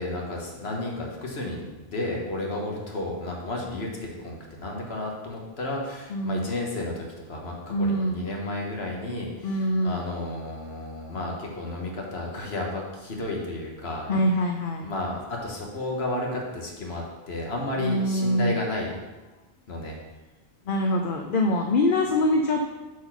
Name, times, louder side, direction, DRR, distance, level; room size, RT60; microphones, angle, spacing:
voice 1, 0.0-14.1 14.8-19.0 19.7-20.0, left 2 dB, 85° left, -1 dB, 1.6 m, -32 dB
voice 2, 6.1-6.5 7.7-8.2 9.4-10.0 14.1-14.8 17.8-18.5 20.7-22.6, left 1 dB, 60° left, 3 dB, 0.8 m, -24 dB
7.3 x 4.1 x 6.0 m, 1.2 s
omnidirectional pair, 1.0 m